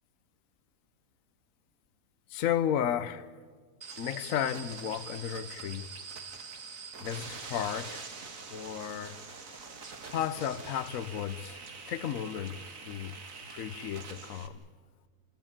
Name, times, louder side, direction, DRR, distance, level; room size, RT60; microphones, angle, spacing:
voice 1, 2.3-3.3 4.0-5.9 7.0-8.0 8.5-9.2 10.1-11.6 11.9-13.2 13.5-14.6, left 9 dB, 65° left, 1.2 m, -33 dB
sound 1, 3.8-14.5, right 4 dB, 60° right, 2.1 m, -44 dB
29.5 x 15.5 x 8.9 m
omnidirectional pair, 1.6 m